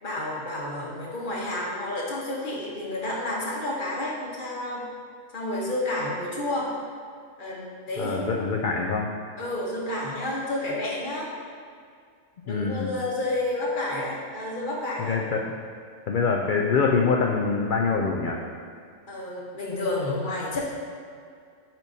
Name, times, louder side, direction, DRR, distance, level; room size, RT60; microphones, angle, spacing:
voice 1, 0.0-4.8 5.3-6.7 7.4-8.3 9.4-11.3 12.4-15.2 19.1-20.6, left 1 dB, 40° left, -4 dB, 1.2 m, -30 dB
voice 2, 8.0-9.1 12.5-12.9 15.0-15.4 16.1-18.4, left 5 dB, 75° left, 0 dB, 0.4 m, -24 dB
9.8 x 4.5 x 2.7 m, 2.2 s
omnidirectional pair, 1.4 m